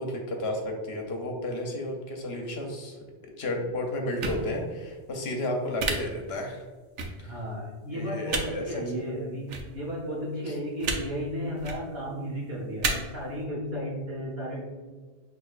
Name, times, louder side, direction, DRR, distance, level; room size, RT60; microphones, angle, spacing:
voice 1, 0.0-3.0 3.4-6.6 7.2-7.3 7.9-9.0 10.5-10.6, left 1 dB, 65° left, 2 dB, 0.9 m, -32 dB
sound 1, 4.2-4.4 5.8-5.9 7.0-7.1 8.3-8.4 9.5-9.6 10.8-11.0 11.6-11.8 12.8-12.9, right 4 dB, 85° right, 1.0 m, -28 dB
voice 2, 7.2-14.7, equal, 60° right, -3 dB, 1.3 m, -34 dB
6.2 x 2.9 x 2.4 m, 1.4 s
omnidirectional pair, 1.2 m